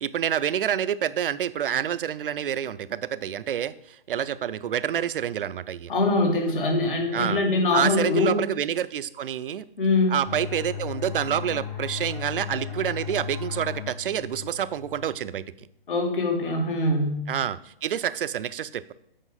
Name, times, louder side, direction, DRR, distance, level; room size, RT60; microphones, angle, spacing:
voice 1, 0.0-5.9 7.1-7.4 7.7-9.7 10.1-15.4 17.3-18.9, right 9 dB, 65° right, 15 dB, 0.5 m, -28 dB
voice 2, 5.9-8.3 9.8-10.2 15.9-17.2, left 2 dB, 60° left, 1 dB, 2.1 m, -23 dB
sound 1, 10.3-15.6, left 8 dB, 20° left, 1.4 m, -36 dB
8.2 x 5.0 x 3.8 m, 0.76 s
hypercardioid pair, 140°, 30 cm